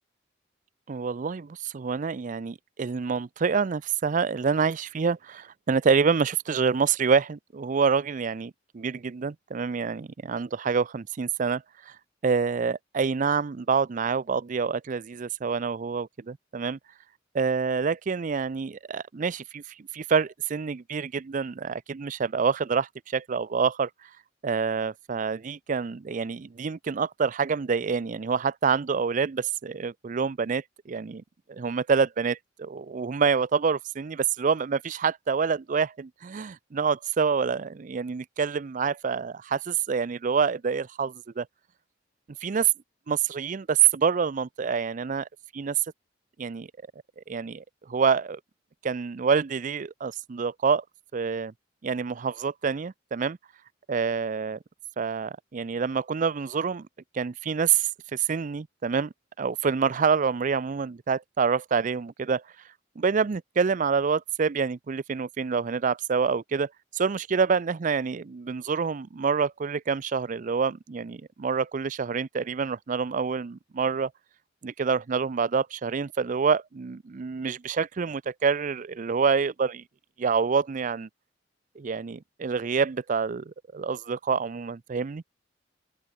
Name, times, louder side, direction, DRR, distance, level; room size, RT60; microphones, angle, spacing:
voice 1, 0.9-12.0 12.2-16.8 17.3-23.9 24.4-31.2 31.5-41.5 42.4-42.7 43.1-45.3 45.5-45.8 46.4-46.7 47.2-48.4 48.8-50.8 51.1-51.5 51.8-53.4 53.9-54.6 55.0-56.9 57.1-62.4 63.0-74.1 74.6-79.8 80.2-81.1 81.8-85.2, right 5 dB, 45° right, 0.4 m, -27 dB
open air
head